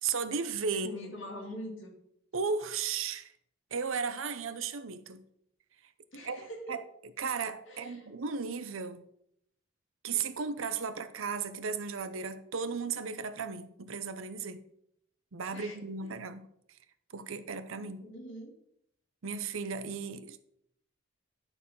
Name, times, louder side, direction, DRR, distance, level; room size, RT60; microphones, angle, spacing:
voice 1, 0.0-0.9 2.3-3.3 3.7-5.2 6.2-6.8 7.2-9.0 10.0-14.6 15.3-16.8 17.1-18.0 19.2-20.4, right 5 dB, 80° right, 12 dB, 0.7 m, -35 dB
voice 2, 0.7-1.9 6.1-6.8 7.7-8.1 15.5-15.7 16.0-16.1 17.8-18.5, equal, 65° left, -1 dB, 2.8 m, -43 dB
11.0 x 4.1 x 5.6 m, 0.74 s
head